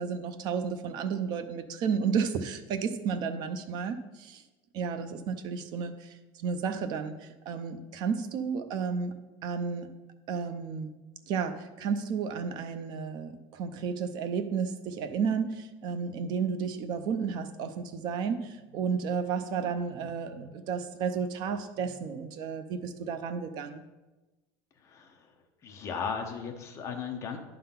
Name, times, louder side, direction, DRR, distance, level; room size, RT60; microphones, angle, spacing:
voice 1, 0.0-4.4 4.7-9.2 9.4-9.9 10.3-10.9 11.3-23.8, right 6 dB, 40° right, 9 dB, 0.6 m, -32 dB
voice 2, 24.8-25.2 25.6-27.4, left 6 dB, 25° left, 3 dB, 0.8 m, -36 dB
10.5 x 3.8 x 5.7 m, 1.1 s
cardioid pair, 175°, 12 cm